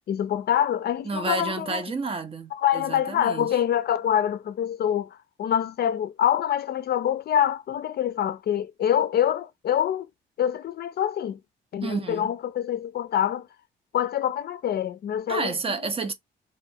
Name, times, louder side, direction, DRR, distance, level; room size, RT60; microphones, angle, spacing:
voice 1, 0.1-1.8 2.5-10.1 10.4-11.4 11.7-13.5 13.9-15.5, left 10 dB, 55° left, 0.4 m, -25 dB
voice 2, 1.0-3.6 11.8-12.3 15.3-16.1, right 4 dB, 30° right, 0.5 m, -30 dB
2.3 x 2.2 x 2.6 m
cardioid pair, 90°, 20 cm